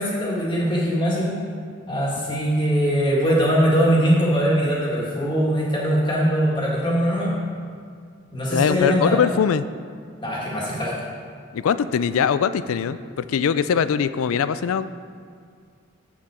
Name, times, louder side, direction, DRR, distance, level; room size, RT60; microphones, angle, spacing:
voice 1, 0.0-1.4 1.9-7.3 8.3-9.2 10.2-10.9, equal, 20° left, -5 dB, 1.8 m, -21 dB
voice 2, 8.5-9.7 11.5-14.9, left 7 dB, 80° left, 14 dB, 0.4 m, -21 dB
8.4 x 7.2 x 4.8 m, 2.1 s
head